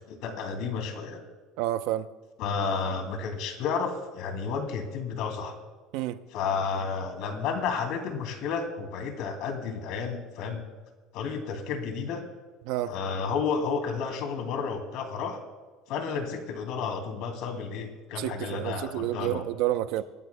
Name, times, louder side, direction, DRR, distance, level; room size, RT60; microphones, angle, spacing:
voice 1, 0.1-1.2 2.4-5.5 6.3-10.6 11.1-12.2 12.9-15.4 15.9-19.4, left 5 dB, 65° left, 2.4 m, -31 dB
voice 2, 1.6-2.1 5.9-6.2 12.6-12.9 18.2-20.0, right 14 dB, 70° right, 0.6 m, -29 dB
25.5 x 12.5 x 2.2 m
cardioid pair, 145°, 0 cm